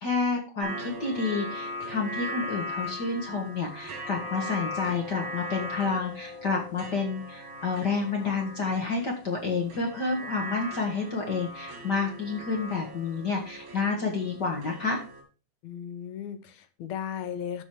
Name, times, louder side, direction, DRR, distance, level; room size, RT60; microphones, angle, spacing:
voice 1, 0.0-15.0, left 4 dB, 50° left, 1 dB, 1.3 m, -29 dB
sound 1, 0.6-15.2, left 1 dB, 65° right, 4.0 m, -39 dB
voice 2, 15.6-17.6, left 8 dB, 70° left, 10 dB, 1.8 m, -36 dB
13.0 x 4.5 x 4.7 m, 0.37 s
omnidirectional pair, 3.7 m